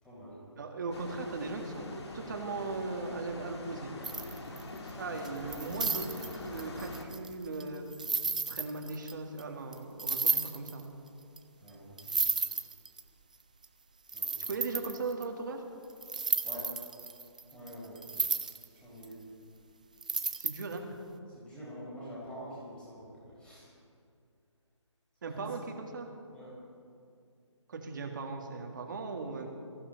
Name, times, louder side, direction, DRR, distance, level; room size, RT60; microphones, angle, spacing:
voice 1, 0.0-0.4 4.8-5.2 11.6-12.2 14.1-14.4 16.4-16.7 17.5-18.0 18.7-19.2 21.3-23.7 25.3-25.4 26.3-26.6, equal, 5° left, -8 dB, 4.6 m, -47 dB
voice 2, 0.6-3.9 5.0-7.9 8.5-10.9 14.5-15.6 20.4-20.8 25.2-26.1 27.7-29.5, right 3 dB, 40° right, 3 dB, 1.8 m, -38 dB
sound 1, 0.9-7.1, left 2 dB, 55° left, 2.3 m, -44 dB
sound 2, 4.0-4.8 5.2-9.1 9.4-9.5 9.7-9.8 10.0-10.8 11.4-11.5 11.7-11.8 12.0-13.0 13.6-13.7 14.1-15.2 16.0-18.6 19.0-19.1 20.0-20.8, right 4 dB, 15° right, 0.3 m, -33 dB
24.5 x 15.0 x 4.0 m, 2.4 s
hypercardioid pair, 165°, 16 cm